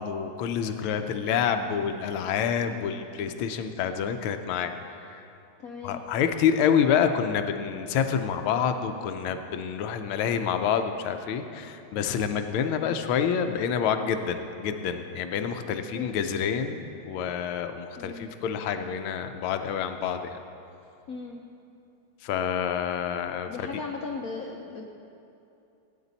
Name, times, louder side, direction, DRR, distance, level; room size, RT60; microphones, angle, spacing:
voice 1, 0.0-5.2 5.8-20.4 22.2-23.7, left 7 dB, 80° left, 8 dB, 1.5 m, -28 dB
voice 2, 5.6-6.0 15.6-16.2 18.0-18.4 21.1-21.4 23.5-24.9, left 4 dB, 60° left, 1 dB, 0.9 m, -38 dB
18.0 x 9.7 x 4.1 m, 2.7 s
omnidirectional pair, 2.4 m